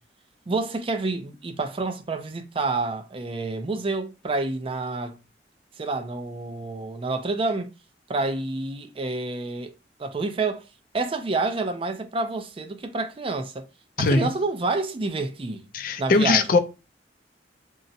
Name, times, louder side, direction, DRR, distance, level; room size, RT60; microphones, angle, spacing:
voice 1, 0.5-5.2 5.8-7.7 8.1-9.7 10.0-10.7 10.9-13.7 14.0-15.6 16.0-16.6, right 3 dB, 30° right, 0.4 m, -28 dB
voice 2, 14.0-14.3 15.7-16.6, left 3 dB, 50° left, 0.4 m, -20 dB
3.8 x 2.0 x 2.7 m
head